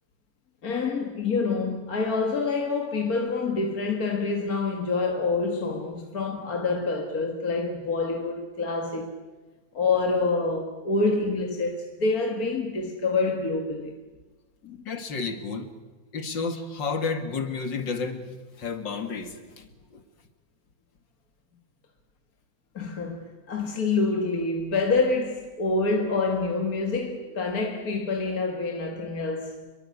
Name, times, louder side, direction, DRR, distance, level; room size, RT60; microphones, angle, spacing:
voice 1, 0.6-9.1 9.7-13.9 14.6-14.8 22.7-29.7, left 3 dB, 50° left, 2.1 m, -27 dB
voice 2, 14.8-15.8 16.1-20.0, left 4 dB, 65° left, 2.7 m, -31 dB
28.0 x 22.5 x 8.5 m
omnidirectional pair, 2.1 m